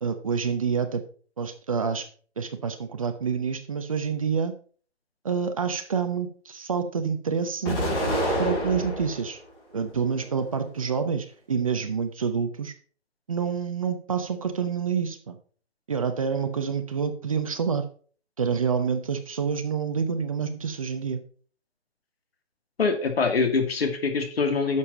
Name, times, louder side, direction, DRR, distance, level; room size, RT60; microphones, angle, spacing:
voice 1, 0.0-1.0 1.4-2.1 2.4-4.5 5.2-7.8 8.4-9.4 9.7-12.7 13.3-15.4 15.9-17.9 18.4-21.2, right 6 dB, 30° right, 9 dB, 0.8 m, -27 dB
Explosion, 7.6-9.3 9.8-10.7, equal, 20° left, 5.2 m, -28 dB
voice 2, 22.8-24.8, left 4 dB, 60° left, 5 dB, 2.4 m, -24 dB
11.0 x 7.1 x 4.2 m, 0.43 s
hypercardioid pair, 165°, 35 cm